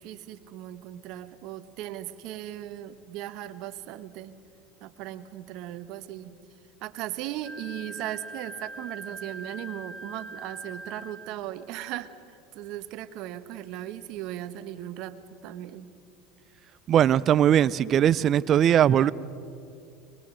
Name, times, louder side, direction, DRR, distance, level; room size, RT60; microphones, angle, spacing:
voice 1, 0.0-4.3 4.8-6.4 6.8-15.9 18.9-19.1, right 13 dB, 60° right, 1.1 m, -38 dB
Wind instrument woodwind instrument, 7.4-11.3, right 1 dB, ahead, 2.8 m, -42 dB
voice 2, 16.9-19.1, right 10 dB, 45° right, 0.5 m, -20 dB
22.5 x 21.5 x 6.4 m
hypercardioid pair, 90°, 0 cm